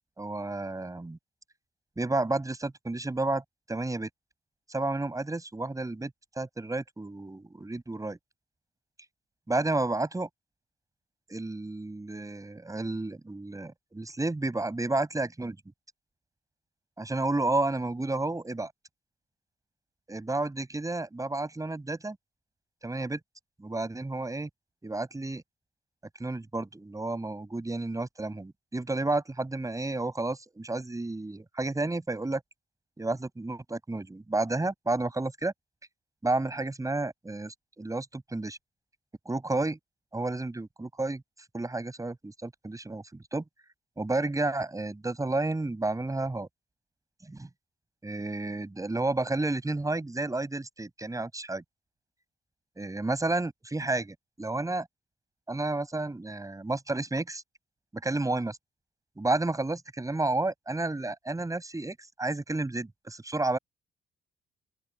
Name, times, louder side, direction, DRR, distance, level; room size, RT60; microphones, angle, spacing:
voice 1, 0.2-1.2 2.0-3.4 3.7-4.1 4.7-6.1 6.4-8.2 9.5-10.3 11.3-15.6 17.0-18.7 20.1-22.2 22.8-23.2 23.6-24.5 24.8-25.4 26.2-32.4 33.0-35.5 36.2-38.6 39.2-39.8 40.1-41.2 41.5-43.4 44.0-46.5 47.2-47.5 48.0-51.6 52.8-54.9 55.5-57.4 57.9-58.6 59.2-63.6, right 2 dB, 15° right, 6.4 m, -31 dB
open air
cardioid pair, 90°, 20 cm